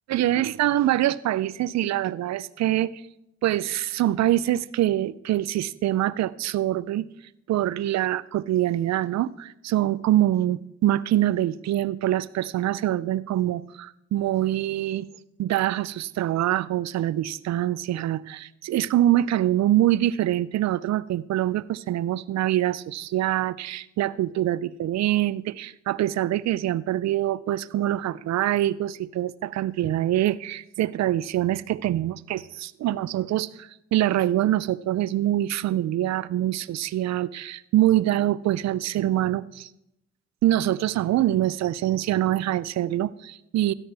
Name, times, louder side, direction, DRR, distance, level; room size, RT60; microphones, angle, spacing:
voice 1, 0.1-3.0 3.4-7.1 7.5-15.1 15.4-39.7 40.4-43.7, right 13 dB, 65° right, 19 dB, 0.5 m, -24 dB
13.0 x 10.5 x 3.4 m, 0.84 s
supercardioid pair, 55°, 29 cm